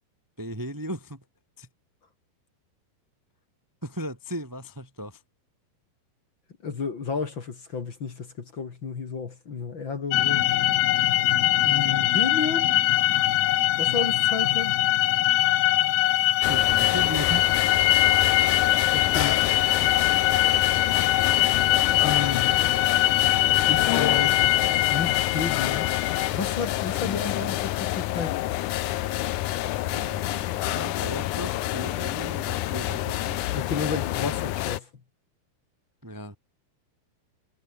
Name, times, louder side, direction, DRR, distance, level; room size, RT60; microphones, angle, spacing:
voice 1, 0.4-1.2 1.6-1.7 3.8-5.2 16.5-17.4 29.8-33.4 36.0-36.3, equal, 30° right, 0.3 m, -36 dB
voice 2, 6.6-10.5 11.6-12.7 13.8-14.7 18.9-19.4 22.0-22.6 23.7-25.9 26.3-28.3 33.5-34.9, left 5 dB, 40° left, 2.0 m, -32 dB
sound 1, 10.1-26.3, left 14 dB, 65° left, 2.6 m, -22 dB
sound 2, 16.4-34.8, left 15 dB, 90° left, 1.7 m, -28 dB
omnidirectional pair, 4.9 m